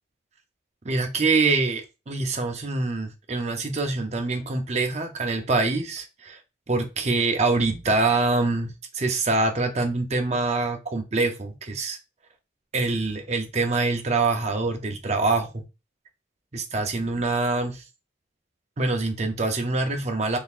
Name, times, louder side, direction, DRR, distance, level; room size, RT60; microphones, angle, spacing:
voice 1, 0.8-6.4 6.7-12.0 12.7-15.6 16.5-17.8 18.8-20.4, right 3 dB, 35° right, 5 dB, 0.6 m, -25 dB
3.8 x 3.4 x 2.4 m, 0.27 s
head